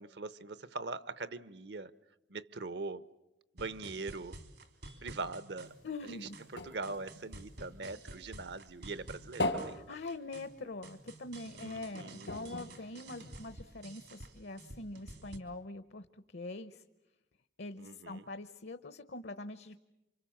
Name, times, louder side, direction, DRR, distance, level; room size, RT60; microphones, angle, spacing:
voice 1, 0.0-1.9 2.3-3.0 3.5-4.4 5.0-5.7 6.1-6.2 6.5-9.8 11.5-12.3 17.8-18.2, right 3 dB, 70° right, 0.9 m, -42 dB
sound 1, 3.6-15.4, right 1 dB, 85° right, 3.3 m, -51 dB
sound 2, 5.6-8.3 8.7-10.9 11.2-11.4 11.6-11.8 12.2-13.7 14.4-14.5, left 1 dB, 85° left, 3.6 m, -40 dB
voice 2, 5.8-6.4 9.7-16.1 16.3-16.8 17.6-19.8, left 2 dB, 70° left, 0.9 m, -43 dB
28.5 x 25.5 x 7.3 m
head